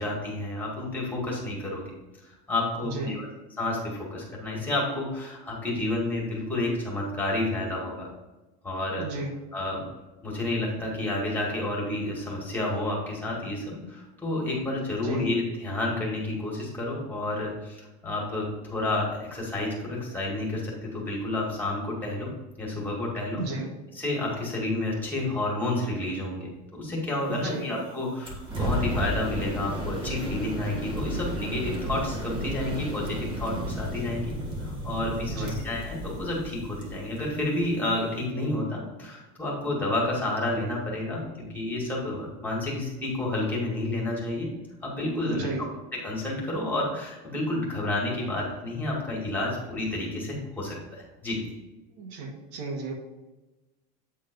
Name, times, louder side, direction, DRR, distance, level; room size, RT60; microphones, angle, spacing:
voice 1, 0.0-1.9 2.2-3.3 3.6-8.1 8.6-9.1 9.5-9.8 10.2-22.3 22.6-23.4 23.9-34.3 34.6-44.5 44.8-45.5 45.9-51.4, left 2 dB, 10° left, -3 dB, 2.0 m, -30 dB
voice 2, 9.0-9.3 15.0-15.3 23.4-23.7 27.3-27.7 35.3-35.6 45.2-45.6 52.0-52.9, right 3 dB, 85° right, 2 dB, 1.8 m, -34 dB
sound 1, 28.2-38.2, equal, 25° right, 1.5 m, -33 dB
8.6 x 3.8 x 5.2 m, 1.1 s
cardioid pair, 160°, 20 cm